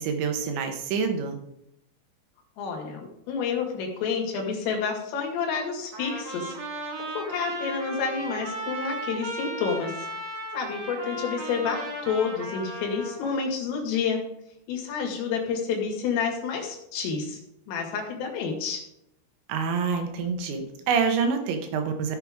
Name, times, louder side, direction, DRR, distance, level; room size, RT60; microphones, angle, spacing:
voice 1, 0.0-1.4 19.5-22.2, right 5 dB, 70° right, 5 dB, 3.2 m, -27 dB
voice 2, 2.6-6.6 7.2-10.1 10.5-14.2 14.7-17.4 17.7-18.8, left 6 dB, 75° left, 1 dB, 4.6 m, -29 dB
Trumpet, 5.9-13.4, right 1 dB, 55° right, 2.0 m, -35 dB
15.5 x 7.6 x 3.6 m, 0.79 s
omnidirectional pair, 6.0 m